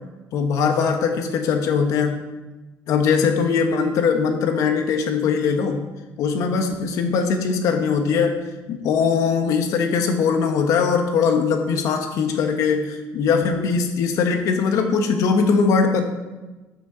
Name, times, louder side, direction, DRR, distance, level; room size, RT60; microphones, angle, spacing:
voice 1, 0.3-2.2 2.9-5.9 6.2-8.4 8.7-16.0, left 5 dB, 60° left, 5 dB, 1.2 m, -21 dB
7.9 x 6.4 x 6.1 m, 1.1 s
cardioid pair, 165°, 6 cm